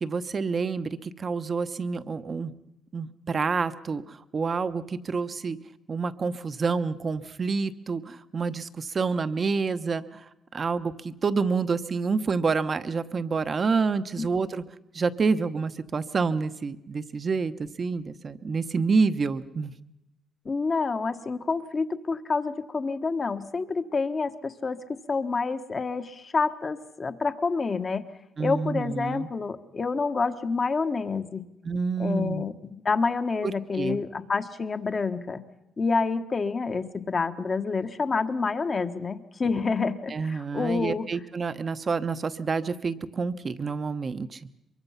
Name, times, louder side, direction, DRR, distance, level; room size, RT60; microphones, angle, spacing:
voice 1, 0.0-2.5 2.9-5.6 5.9-10.2 10.5-14.6 14.9-19.7 28.4-29.3 31.6-32.4 33.4-34.0 40.1-44.5, right 4 dB, 40° right, 11 dB, 1.0 m, -28 dB
voice 2, 20.4-28.0 28.4-31.4 32.0-35.4 35.8-41.1, left 4 dB, 35° left, 9 dB, 1.2 m, -28 dB
23.5 x 23.0 x 5.8 m, 0.90 s
cardioid pair, 90°, 0 cm